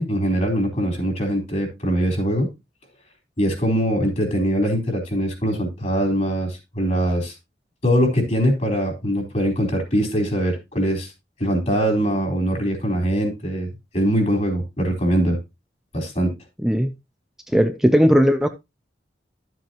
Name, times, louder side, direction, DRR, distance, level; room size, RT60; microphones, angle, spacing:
voice 1, 0.0-2.5 3.4-7.3 7.8-11.1 11.4-15.4 15.9-16.3, equal, 40° left, 3 dB, 4.0 m, -22 dB
voice 2, 17.5-18.5, equal, 5° right, 7 dB, 0.5 m, -17 dB
12.0 x 7.6 x 2.9 m, 0.23 s
head